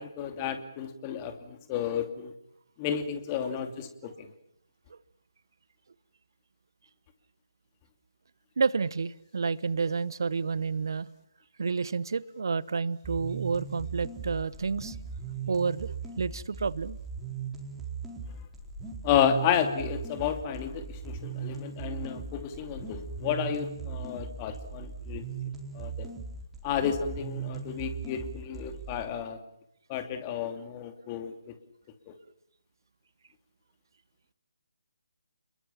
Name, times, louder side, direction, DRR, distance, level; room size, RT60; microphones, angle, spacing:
voice 1, 0.0-2.3 2.8-4.3 19.0-25.2 25.7-26.1 26.6-29.4 29.9-31.6 32.1-32.2, left 8 dB, 25° left, 8 dB, 2.7 m, -31 dB
voice 2, 8.6-11.1 11.6-15.0 15.5-17.0, right 5 dB, 60° right, 19 dB, 0.9 m, -30 dB
sound 1, 13.0-29.0, right 6 dB, 5° right, 4.5 m, -39 dB
29.5 x 22.0 x 7.3 m, 0.78 s
figure-of-eight pair, 150°, 2 cm